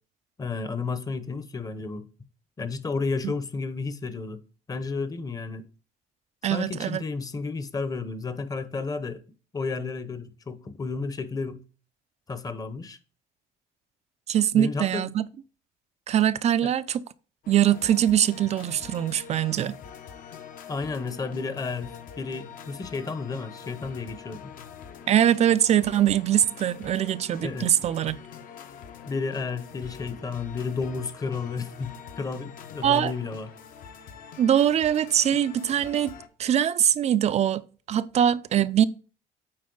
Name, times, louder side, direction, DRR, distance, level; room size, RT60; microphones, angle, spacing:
voice 1, 0.4-2.1 2.6-4.4 4.7-5.6 6.5-9.2 9.5-11.6 12.3-13.0 14.5-15.1 16.6-16.7 20.7-24.5 27.4-27.7 29.1-33.5, left 4 dB, 25° left, 0.8 m, -32 dB
voice 2, 6.4-7.0 14.3-15.3 16.1-17.0 17.5-19.7 25.1-28.2 32.8-33.1 34.4-36.1 36.4-37.6 37.9-38.8, right 10 dB, 45° right, 0.4 m, -22 dB
sound 1, 17.4-36.3, left 7 dB, 60° left, 1.0 m, -45 dB
8.7 x 4.2 x 3.9 m
cardioid pair, 110°, 16 cm